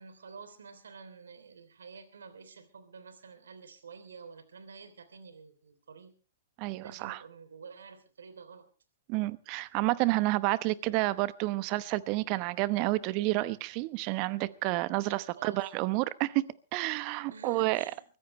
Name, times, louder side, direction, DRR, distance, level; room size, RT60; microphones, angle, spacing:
voice 1, 0.0-6.1 6.8-8.7 15.3-15.6 17.3-18.0, right 5 dB, 75° right, 3.1 m, -49 dB
voice 2, 6.6-7.2 9.1-17.8, right 19 dB, 40° right, 0.9 m, -30 dB
23.0 x 15.5 x 3.2 m
hypercardioid pair, 115°, 0 cm